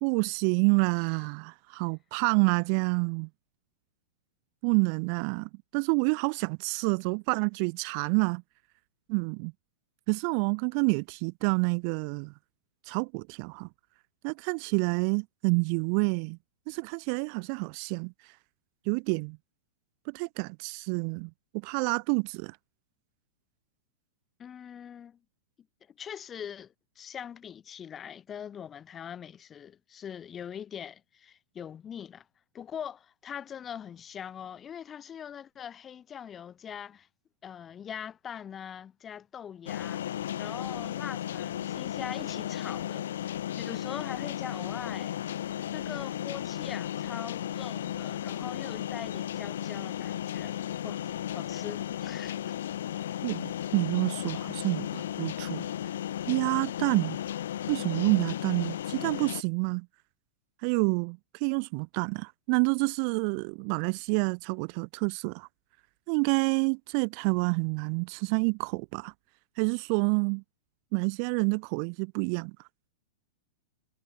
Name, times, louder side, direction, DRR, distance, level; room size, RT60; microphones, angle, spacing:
voice 1, 0.0-3.3 4.6-8.4 9.1-9.5 10.1-12.3 12.9-13.7 14.2-16.4 16.7-18.1 18.9-19.4 20.1-21.3 21.6-22.6 53.2-55.7 56.3-57.2 57.7-59.9 60.6-65.5 66.1-69.1 69.6-70.4 70.9-72.5, right 40 dB or more, 40° right, 2.8 m, -28 dB
voice 2, 24.4-25.2 26.0-32.3 32.5-37.1 37.4-45.1 45.7-50.6 50.8-51.0 51.3-52.5, left 8 dB, 15° left, 7.6 m, -42 dB
sound 1, 39.7-59.4, left 11 dB, 75° left, 3.5 m, -35 dB
supercardioid pair, 165°, 0 cm